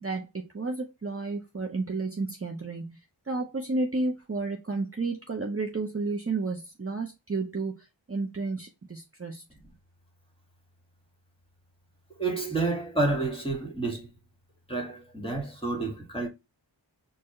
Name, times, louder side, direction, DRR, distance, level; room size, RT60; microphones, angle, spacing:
voice 1, 0.0-3.0 3.3-9.4, right 3 dB, 30° right, 0.7 m, -32 dB
voice 2, 12.2-14.1 14.7-16.3, right 3 dB, 10° left, 1.7 m, -29 dB
4.4 x 2.8 x 3.0 m
wide cardioid pair, 45°, 45 cm